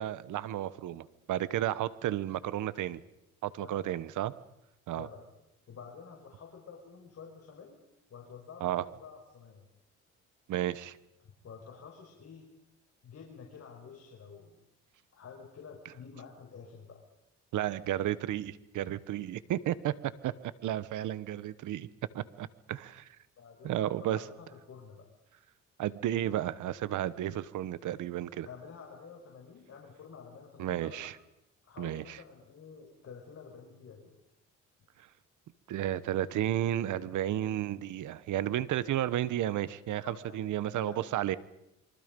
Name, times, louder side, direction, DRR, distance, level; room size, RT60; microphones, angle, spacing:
voice 1, 0.0-3.0 3.4-4.3 4.9-5.1 8.6-8.8 10.5-11.0 17.5-20.3 20.6-21.9 22.1-23.1 23.6-24.2 25.8-28.5 30.6-31.1 31.8-32.2 35.7-41.4, right 12 dB, 80° right, 17 dB, 1.2 m, -32 dB
voice 2, 4.9-5.2 5.7-7.8 8.1-9.7 11.2-12.5 13.0-14.6 15.1-17.0 23.4-25.1 28.2-31.1 31.6-34.2 40.0-40.5 40.8-41.0, left 6 dB, 55° left, 0 dB, 5.5 m, -50 dB
27.5 x 24.0 x 5.4 m, 0.86 s
cardioid pair, 90°, 30 cm